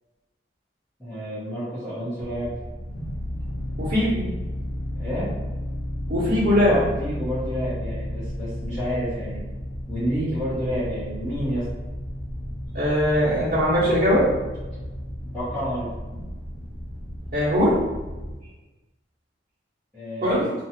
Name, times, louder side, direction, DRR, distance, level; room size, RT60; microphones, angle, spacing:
voice 1, 1.0-2.5 4.9-5.3 6.6-9.4 9.9-11.6 15.3-15.9 19.9-20.5, equal, ahead, -17 dB, 1.1 m, -29 dB
sound 1, 2.2-18.4, equal, 50° left, 0.8 m, -33 dB
voice 2, 3.8-4.2 6.1-6.8 12.7-14.3 17.3-17.8 20.2-20.5, equal, 40° right, -11 dB, 0.9 m, -20 dB
2.6 x 2.4 x 2.8 m, 1.2 s
head